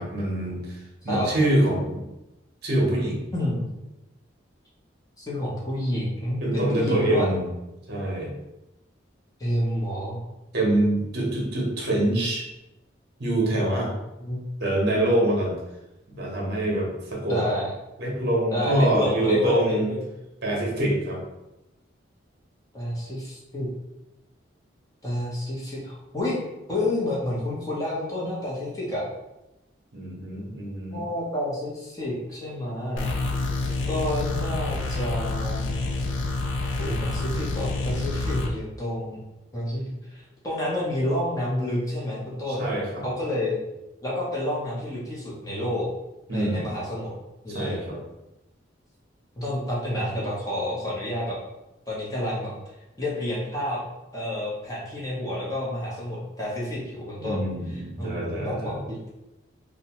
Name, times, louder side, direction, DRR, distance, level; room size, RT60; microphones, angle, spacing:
voice 1, 0.0-2.0 2.6-3.3 6.4-7.4 7.9-8.3 10.5-12.5 13.2-13.9 14.6-15.5 16.1-17.4 18.0-19.9 20.4-21.2 29.9-31.0 42.6-43.0 46.3-46.6 47.5-48.0 57.2-58.8, right 1 dB, 55° right, -2 dB, 0.8 m, -25 dB
voice 2, 3.3-3.6 5.2-7.3 9.4-10.2 14.2-14.4 17.3-17.7 18.5-20.0 22.7-23.7 25.0-26.4 26.7-29.0 30.9-33.1 33.9-35.7 36.8-39.2 39.5-39.8 40.1-42.7 43.0-43.6 44.0-45.9 46.3-47.1 47.4-47.8 49.4-51.4 51.9-52.5 53.0-53.8 54.1-57.4 57.7-59.1, left 1 dB, 15° left, -6 dB, 0.7 m, -29 dB
sound 1, 33.0-38.5, left 3 dB, 70° left, 0.4 m, -28 dB
2.7 x 2.2 x 2.9 m, 0.96 s
head